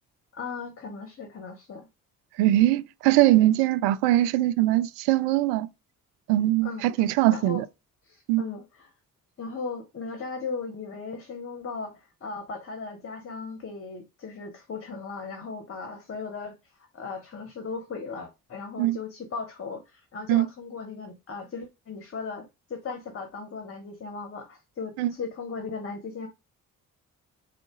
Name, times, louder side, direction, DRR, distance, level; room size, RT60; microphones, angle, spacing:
voice 1, 0.3-1.9 6.6-6.9 7.3-7.6 8.0-8.9 9.4-26.3, left 4 dB, 30° left, 0.9 m, -37 dB
voice 2, 2.4-5.7 6.3-7.6 8.3-8.4 18.8-19.0 20.3-20.5 25.0-25.1, right 15 dB, 60° right, 0.5 m, -21 dB
3.7 x 2.3 x 3.6 m
figure-of-eight pair, 40°, 45 cm